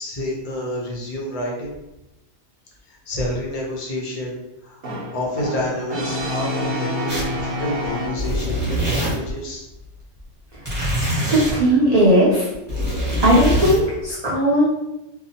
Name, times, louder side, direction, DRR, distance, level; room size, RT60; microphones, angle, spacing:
voice 1, 0.0-1.7 2.9-4.8 5.1-9.6, left 1 dB, 50° left, -2 dB, 0.4 m, -29 dB
Brass instrument, 4.8-8.6, left 1 dB, 45° right, 0.8 m, -28 dB
sound 1, 7.1-7.4 7.8-9.4 10.6-11.5 12.5-13.8, equal, 10° right, 1.1 m, -23 dB
voice 2, 11.3-12.5 13.2-14.8, right 1 dB, 60° right, -7 dB, 0.4 m, -17 dB
2.7 x 2.0 x 2.7 m, 0.91 s
omnidirectional pair, 1.4 m